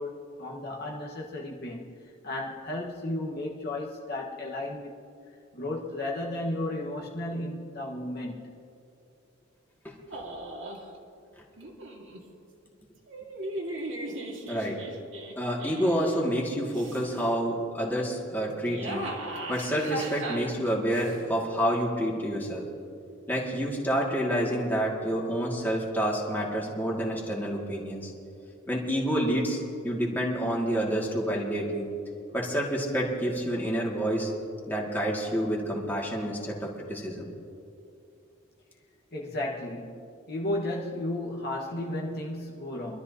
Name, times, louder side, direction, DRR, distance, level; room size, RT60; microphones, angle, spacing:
voice 1, 0.0-1.9 2.2-5.0 5.5-8.5 39.1-43.0, left 1 dB, 50° left, -2 dB, 1.4 m, -34 dB
sound 1, 10.1-10.9 11.6-12.2 13.1-16.2 16.7-17.3 18.5-21.2, right 1 dB, 65° right, 2.0 m, -38 dB
voice 2, 14.5-14.8 15.4-19.1 19.5-22.7 23.3-28.1 28.7-31.9 32.3-34.3 34.7-37.3, equal, 10° left, -3 dB, 2.1 m, -28 dB
25.0 x 13.0 x 2.8 m, 2.5 s
head